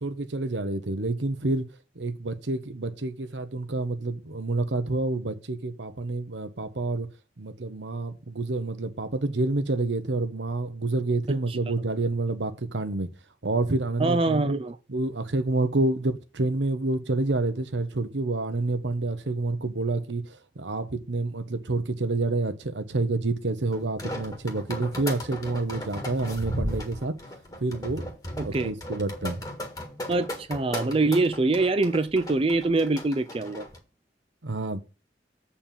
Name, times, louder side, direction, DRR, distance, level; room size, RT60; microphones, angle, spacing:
voice 1, 0.0-1.6 2.0-7.1 7.4-13.1 13.4-14.6 14.9-27.1 27.6-28.0 28.4-29.4 34.4-34.8, right 2 dB, 85° right, 1.0 m, -28 dB
voice 2, 14.0-14.7 28.4-28.7 30.1-33.6, right 3 dB, 30° right, 0.4 m, -24 dB
sound 1, 23.7-33.8, equal, 20° left, 1.6 m, -36 dB
7.5 x 4.3 x 7.0 m
head